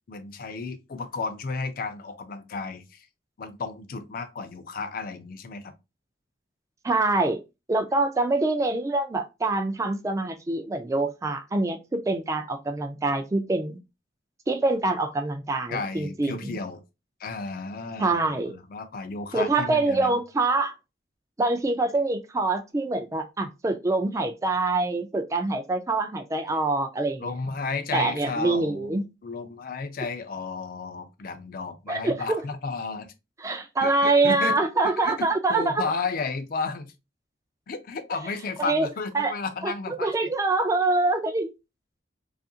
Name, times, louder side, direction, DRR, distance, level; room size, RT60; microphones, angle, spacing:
voice 1, 0.1-3.1 3.4-5.7 15.7-16.8 17.2-20.2 27.2-33.1 33.8-34.6 35.0-36.9 37.7-40.3, left 4 dB, 50° left, 0.4 m, -33 dB
voice 2, 6.8-7.4 7.7-13.8 14.5-16.6 18.0-18.5 19.3-20.7 21.4-27.3 27.9-29.0 31.9-32.4 33.4-35.8 38.6-38.9 39.1-39.3 39.6-41.5, right 2 dB, 15° right, 0.3 m, -25 dB
2.7 x 2.4 x 2.6 m
head